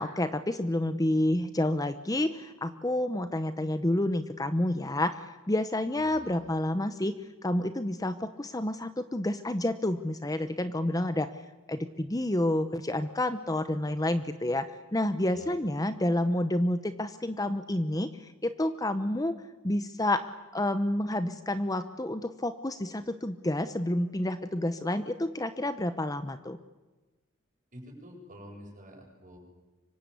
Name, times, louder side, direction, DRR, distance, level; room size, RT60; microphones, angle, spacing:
voice 1, 0.0-7.2 7.4-11.3 11.7-14.7 14.9-18.1 18.4-19.4 19.6-26.6, left 1 dB, 20° left, 11 dB, 0.9 m, -29 dB
voice 2, 5.9-6.5 15.3-15.5 27.7-29.4, equal, 40° right, 1 dB, 7.7 m, -48 dB
25.5 x 24.0 x 8.5 m, 1.2 s
head